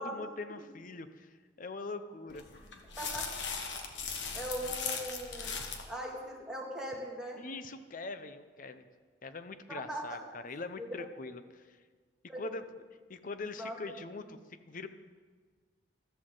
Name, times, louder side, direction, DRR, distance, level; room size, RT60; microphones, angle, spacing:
voice 1, 0.0-2.4 4.6-4.7 7.4-8.9 9.2-11.8 12.4-12.6 13.1-14.4 14.7-14.9, left 3 dB, 50° left, 11 dB, 0.7 m, -42 dB
sound 1, 2.3-5.9, left 5 dB, 80° left, 1.3 m, -38 dB
voice 2, 3.0-3.3 4.3-5.6 5.9-7.4 9.7-10.2 10.8-10.9 12.3-12.4 13.6-13.8, equal, 5° right, -3 dB, 2.2 m, -40 dB
14.0 x 13.5 x 3.9 m, 1.5 s
head